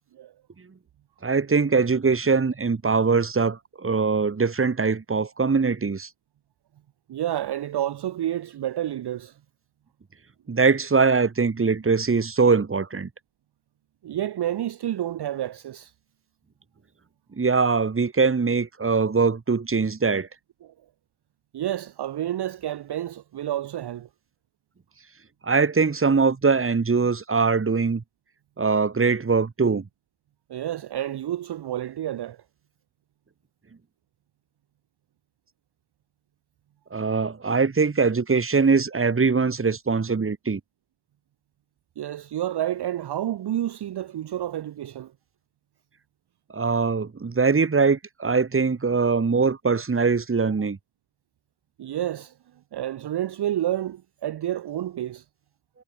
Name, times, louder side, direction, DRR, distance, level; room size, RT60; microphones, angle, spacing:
voice 1, 1.2-6.1 10.5-13.1 17.4-20.3 25.4-28.0 28.6-29.8 36.9-40.6 46.5-50.8, right 4 dB, 25° right, 1.3 m, -22 dB
voice 2, 7.1-9.4 14.0-15.9 20.6-20.7 21.5-24.1 30.5-32.4 42.0-45.1 51.8-52.3 52.7-55.2, right 12 dB, 55° right, 0.6 m, -29 dB
cardioid pair, 80°, 48 cm